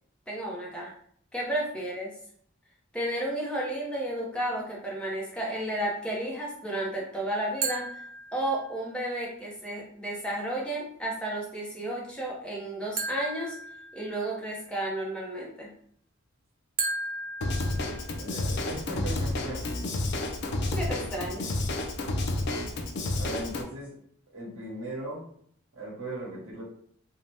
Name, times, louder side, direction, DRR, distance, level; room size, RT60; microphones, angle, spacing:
voice 1, 0.3-0.9 1.3-2.1 2.9-8.0 8.3-13.6 13.9-15.7 20.7-21.5, right 1 dB, 5° left, -3 dB, 0.6 m, -32 dB
sound 1, 7.6-8.9 13.0-14.5 16.8-18.5, right 3 dB, 45° right, 0.5 m, -35 dB
Drum kit / Drum, 17.4-23.6, left 2 dB, 55° left, 0.4 m, -30 dB
voice 2, 18.2-19.8 22.3-22.7 23.2-23.9 24.3-25.3 25.7-26.6, right 1 dB, 65° right, -5 dB, 1.1 m, -38 dB
2.6 x 2.1 x 3.3 m, 0.63 s
head